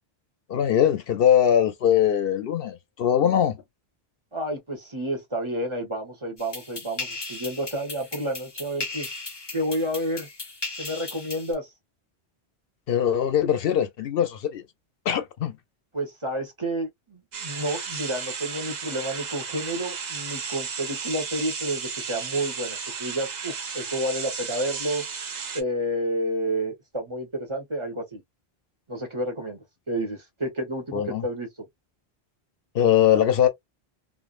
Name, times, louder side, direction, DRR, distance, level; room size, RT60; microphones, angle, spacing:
voice 1, 0.5-3.6 12.9-14.6 15.1-15.6 30.9-31.2 32.7-33.5, left 9 dB, 70° left, 0.7 m, -21 dB
voice 2, 4.3-9.1 9.5-10.3 10.8-11.7 15.9-25.0 25.5-28.2 28.9-31.5, right 1 dB, 30° right, 1.1 m, -30 dB
sound 1, 6.4-11.5, left 3 dB, 25° left, 0.8 m, -37 dB
sound 2, 17.3-25.6, right 6 dB, 50° right, 0.7 m, -34 dB
3.3 x 2.1 x 2.4 m
omnidirectional pair, 1.0 m